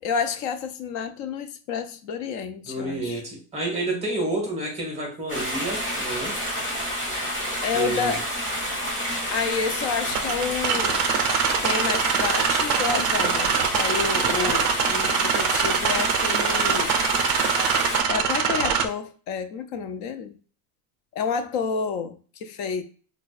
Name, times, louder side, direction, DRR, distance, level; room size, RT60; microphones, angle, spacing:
voice 1, 0.0-3.2 7.6-8.3 9.3-11.1 11.6-17.0 18.1-20.4 21.1-22.8, left 6 dB, 45° left, 0.5 m, -29 dB
voice 2, 2.7-6.4 7.7-8.2, right 2 dB, 15° right, 1.0 m, -29 dB
sound 1, 5.3-18.0, equal, 20° left, 1.5 m, -29 dB
sound 2, 10.1-18.9, right 7 dB, 40° right, 0.5 m, -24 dB
4.1 x 2.3 x 2.4 m
supercardioid pair, 150°, 43 cm